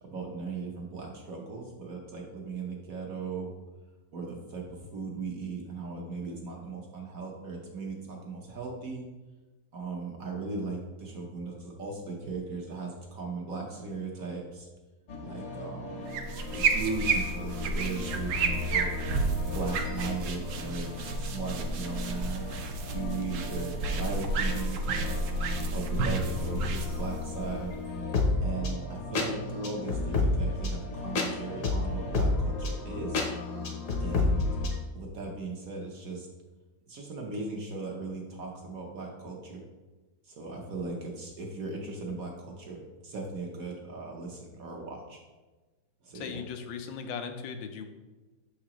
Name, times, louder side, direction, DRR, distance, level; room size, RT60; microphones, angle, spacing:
voice 1, 0.0-3.5 4.1-9.0 9.7-14.7 15.2-15.9 16.5-18.9 19.5-22.5 22.8-25.2 25.7-27.8 28.4-33.2 34.0-34.5 34.9-36.3 36.9-39.6 40.2-45.2 46.0-46.4, right 4 dB, 60° right, 0 dB, 1.1 m, -37 dB
sound 1, 15.1-34.8, left 3 dB, 55° left, 1.0 m, -33 dB
sound 2, 16.1-28.0, right 3 dB, 85° right, 0.7 m, -31 dB
voice 2, 46.1-47.9, left 6 dB, 80° left, 6 dB, 1.3 m, -38 dB
6.5 x 4.9 x 2.9 m, 1.2 s
omnidirectional pair, 2.1 m